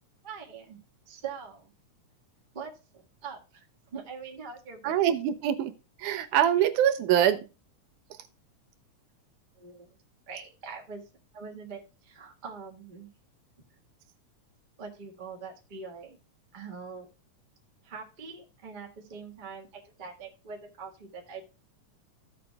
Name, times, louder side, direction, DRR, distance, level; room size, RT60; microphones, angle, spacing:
voice 1, 0.2-0.8 1.1-1.7 2.5-3.6 3.9-5.0 9.6-10.0 10.3-11.0 11.3-13.1 14.8-16.2 16.5-17.1 17.8-21.4, right 5 dB, 40° right, 0 dB, 0.7 m, -43 dB
voice 2, 4.8-5.7 6.0-7.4, right 10 dB, 80° right, 10 dB, 2.0 m, -24 dB
14.5 x 6.9 x 2.2 m, 0.30 s
omnidirectional pair, 3.7 m